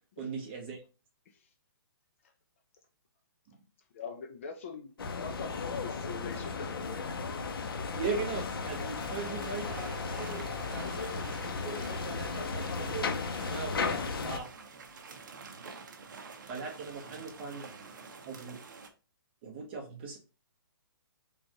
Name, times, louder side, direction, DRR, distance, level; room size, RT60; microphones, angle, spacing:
voice 1, 0.2-0.8 7.9-13.2 13.5-14.5 16.5-17.7 18.3-18.6 19.4-20.2, right 4 dB, 30° right, 1.1 m, -39 dB
voice 2, 3.9-7.0, left 5 dB, 35° left, 0.5 m, -43 dB
sound 1, 5.0-14.4, left 4 dB, 75° left, 0.8 m, -35 dB
sound 2, 8.1-18.9, right 5 dB, 55° right, 0.8 m, -49 dB
5.1 x 2.4 x 3.0 m
hypercardioid pair, 170°, 12 cm